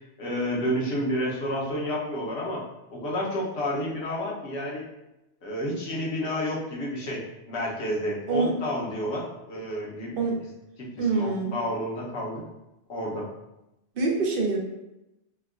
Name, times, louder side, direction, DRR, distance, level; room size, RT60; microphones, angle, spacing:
voice 1, 0.2-2.6 2.9-4.8 5.4-10.2 10.8-12.4 12.9-13.3, equal, 70° left, -3 dB, 1.0 m, -30 dB
voice 2, 11.0-11.6 14.0-14.6, right 3 dB, 55° right, 0 dB, 0.7 m, -25 dB
4.3 x 2.2 x 2.3 m, 0.91 s
omnidirectional pair, 1.2 m